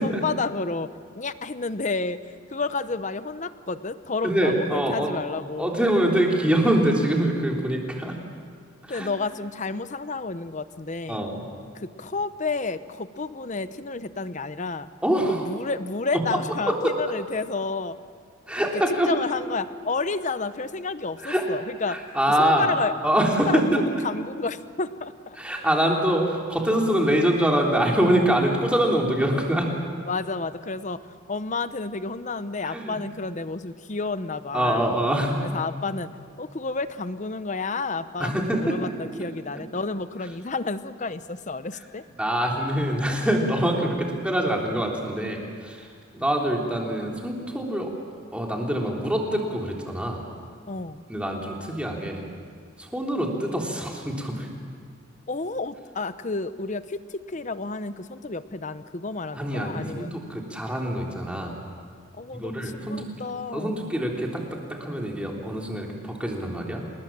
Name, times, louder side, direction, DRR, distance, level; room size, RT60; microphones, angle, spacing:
voice 1, 0.0-5.7 8.9-11.2 11.7-14.9 15.3-18.0 18.7-22.0 22.4-22.9 23.5-25.4 30.0-31.0 31.3-34.9 35.5-36.1 36.4-42.0 50.7-51.0 55.3-60.1 62.1-63.8, left 3 dB, 35° left, 13 dB, 0.8 m, -31 dB
voice 2, 4.2-5.1 5.6-8.2 8.8-9.1 11.1-11.4 15.0-15.4 16.7-16.8 18.5-19.1 21.2-21.4 21.9-22.7 23.0-23.8 25.3-29.7 32.6-33.0 34.5-35.4 38.2-38.9 39.2-39.3 42.2-45.9 46.1-47.9 48.3-50.2 51.1-52.2 52.8-54.5 59.3-61.5 62.3-63.1 63.5-64.4 64.7-66.8, right 1 dB, 5° right, -1 dB, 3.4 m, -24 dB
28.0 x 20.0 x 7.5 m, 2.1 s
head